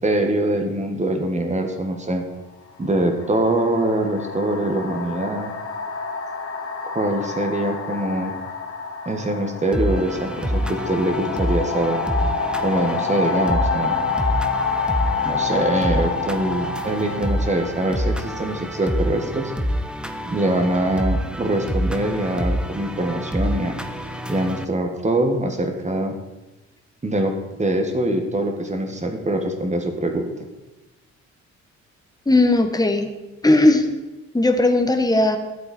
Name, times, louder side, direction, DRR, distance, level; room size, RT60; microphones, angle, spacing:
voice 1, 0.0-2.2 2.8-5.5 6.8-8.3 9.1-12.1 12.6-14.0 15.3-19.5 20.3-23.8 24.3-26.2 27.0-30.3, right 1 dB, 25° right, 5 dB, 1.8 m, -23 dB
sound 1, 1.7-1.9 2.8-19.5, left 5 dB, 50° left, 1.6 m, -28 dB
sound 2, 9.7-24.6, equal, 5° right, 0.8 m, -27 dB
voice 2, 32.2-33.1 33.4-33.9 34.3-35.4, left 2 dB, 10° left, 5 dB, 1.4 m, -17 dB
12.0 x 8.0 x 4.5 m, 1.1 s
cardioid pair, 90°, 30 cm